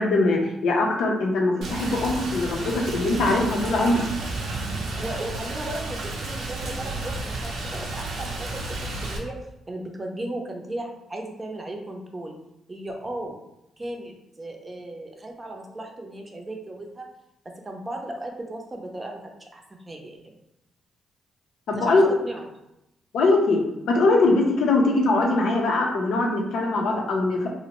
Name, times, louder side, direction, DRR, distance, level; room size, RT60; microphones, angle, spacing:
voice 1, 0.0-4.0 21.7-22.0 23.1-27.5, left 2 dB, 75° left, 1 dB, 0.5 m, -22 dB
Rain, 1.6-9.2, right 2 dB, 80° right, 0.6 m, -32 dB
voice 2, 5.0-8.6 9.0-9.4 9.7-12.3 12.7-13.4 13.8-17.1 17.6-20.4 21.8-22.0 22.2-22.5, right 1 dB, 25° right, 1 dB, 0.5 m, -36 dB
2.5 x 2.0 x 2.9 m, 0.87 s
cardioid pair, 85°, 0 cm